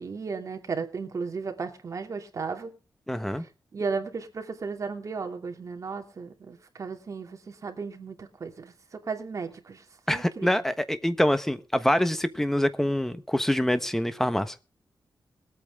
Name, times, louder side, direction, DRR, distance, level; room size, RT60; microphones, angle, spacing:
voice 1, 0.0-2.8 3.7-10.5, right 5 dB, 45° right, 4 dB, 2.7 m, -35 dB
voice 2, 3.1-3.4 10.1-14.6, left 1 dB, 5° left, 11 dB, 1.1 m, -25 dB
21.5 x 8.7 x 3.7 m, 0.32 s
wide cardioid pair, 135°, 7 cm